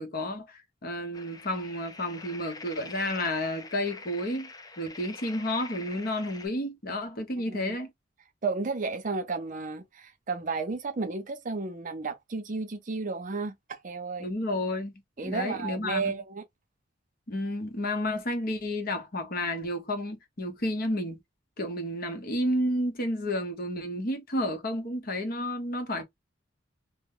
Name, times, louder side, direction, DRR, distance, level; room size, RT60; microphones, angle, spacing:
voice 1, 0.0-4.5 4.8-7.9 14.2-14.9 15.2-16.1 17.3-21.2 21.6-26.0, left 1 dB, 50° left, 0.9 m, -31 dB
sound 1, 1.1-6.5, left 3 dB, 20° left, 0.4 m, -45 dB
voice 2, 8.4-14.3 15.2-16.4, right 4 dB, 40° right, 0.5 m, -33 dB
3.0 x 2.1 x 3.5 m
head